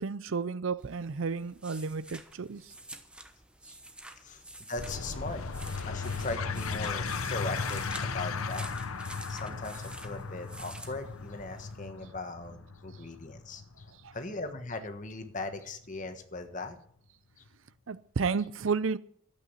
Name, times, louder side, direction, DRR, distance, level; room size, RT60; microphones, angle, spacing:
voice 1, 0.0-2.6 17.9-19.0, right 5 dB, 65° right, 0.5 m, -32 dB
sound 1, 0.8-11.8, right 1 dB, 5° right, 1.0 m, -49 dB
voice 2, 4.7-5.4 5.8-8.7 9.3-13.8 14.1-16.8 17.4-17.5, left 3 dB, 35° left, 1.4 m, -39 dB
sound 2, 4.8-15.9, left 4 dB, 85° left, 0.9 m, -37 dB
12.0 x 8.5 x 8.2 m
head